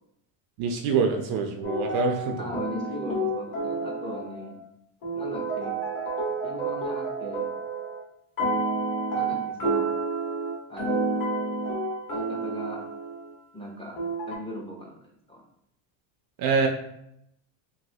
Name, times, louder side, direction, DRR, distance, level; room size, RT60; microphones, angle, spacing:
voice 1, 0.6-2.5 16.4-16.7, right 4 dB, 50° right, 4 dB, 0.5 m, -25 dB
sound 1, 1.6-4.6 5.0-8.0 8.4-13.3 14.0-14.4, right 3 dB, 40° left, 1.4 m, -30 dB
voice 2, 2.4-4.6 5.2-5.8 6.4-7.5 9.1-9.9 10.7-11.0 12.1-12.8 13.5-14.0 14.3-15.0 15.3-15.4, equal, 10° left, -2 dB, 0.6 m, -38 dB
3.1 x 2.6 x 2.7 m, 0.76 s
supercardioid pair, 110°, 49 cm